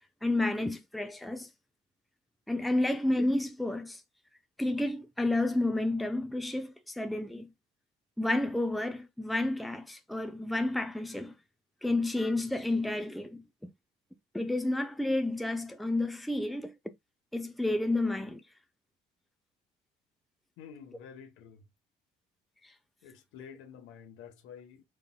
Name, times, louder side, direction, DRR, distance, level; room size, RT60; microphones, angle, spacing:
voice 1, 0.2-1.5 2.5-4.0 4.6-7.5 8.2-11.3 11.8-13.4 14.3-16.7 17.3-18.4, left 2 dB, ahead, 0.6 m, -30 dB
voice 2, 20.6-21.6 23.0-24.8, left 7 dB, 80° left, 1.2 m, -49 dB
5.1 x 4.2 x 2.2 m
cardioid pair, 95°, 20 cm